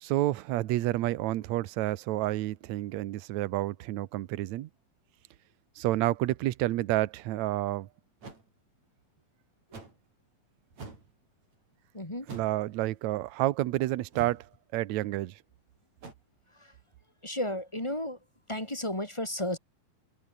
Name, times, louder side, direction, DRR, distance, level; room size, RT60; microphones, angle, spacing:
voice 1, 0.0-4.7 5.8-7.9 12.3-15.4, right 16 dB, 75° right, 1.8 m, -29 dB
sound 1, 8.2-8.4 9.7-10.0 10.7-11.1 12.2-12.6 14.1-14.5 16.0-16.1, right 3 dB, 50° right, 7.9 m, -45 dB
voice 2, 11.9-12.3 16.6-16.7 17.2-18.2 18.5-19.6, left 1 dB, 10° left, 2.0 m, -33 dB
omnidirectional pair, 4.3 m